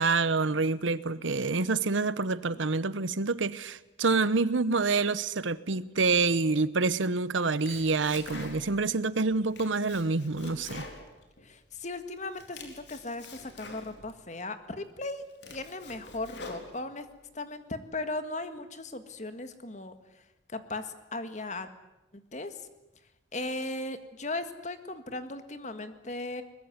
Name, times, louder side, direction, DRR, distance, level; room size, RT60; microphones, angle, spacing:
voice 1, 0.0-10.9, right 3 dB, 85° right, 0.9 m, -27 dB
Domestic sounds home sounds, 7.4-8.9 9.3-11.8 12.2-14.2 14.7-14.8 15.2-17.1, left 2 dB, 65° left, 4.3 m, -46 dB
voice 2, 8.7-9.2 11.4-15.2 15.5-17.1 17.3-20.0 20.5-21.7 22.1-22.7 23.3-26.4, left 2 dB, 40° left, 1.8 m, -37 dB
22.0 x 20.5 x 9.6 m
head